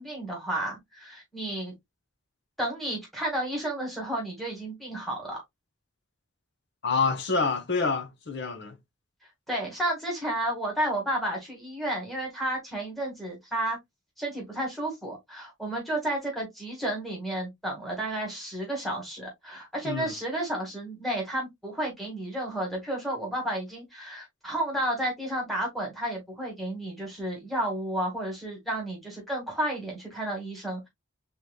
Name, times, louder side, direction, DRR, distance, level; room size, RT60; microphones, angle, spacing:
voice 1, 0.0-1.7 2.6-5.4 9.5-13.8 14.2-30.9, right 1 dB, ahead, 1.8 m, -32 dB
voice 2, 6.8-8.8 19.8-20.1, left 4 dB, 55° left, 0.8 m, -27 dB
4.6 x 3.6 x 2.2 m
head